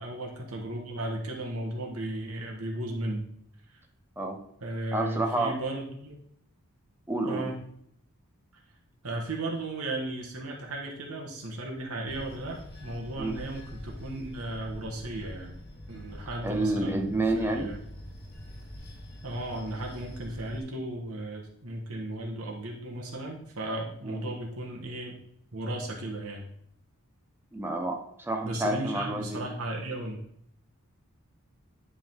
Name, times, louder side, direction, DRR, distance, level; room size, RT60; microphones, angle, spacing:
voice 1, 0.0-3.3 4.6-6.2 7.2-7.6 9.0-15.6 15.9-17.8 19.2-25.2 25.5-26.5 28.4-30.2, right 1 dB, 80° right, -1 dB, 1.3 m, -35 dB
voice 2, 4.9-5.5 7.1-7.5 13.2-13.4 16.4-17.7 24.0-24.3 27.5-29.4, right 2 dB, 10° right, 3 dB, 0.7 m, -29 dB
Bell / Train, 12.1-20.6, left 1 dB, 45° left, 1.5 m, -44 dB
10.0 x 3.7 x 3.6 m, 0.70 s
head